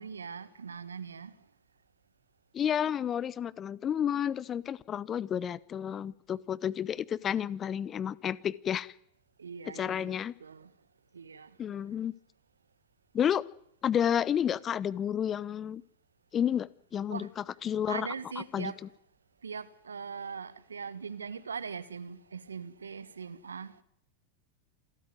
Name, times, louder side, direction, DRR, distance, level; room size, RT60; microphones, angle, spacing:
voice 1, 0.0-1.4 9.4-10.7 11.1-11.6 17.1-17.3 17.9-18.8 19.4-23.8, right 6 dB, 80° right, 1.3 m, -41 dB
voice 2, 2.5-8.9 9.8-10.3 11.6-12.1 13.1-13.4 13.8-15.8 16.3-18.1 18.5-18.7, left 9 dB, 30° left, 0.9 m, -31 dB
27.5 x 13.5 x 9.5 m
figure-of-eight pair, 90°, 0 cm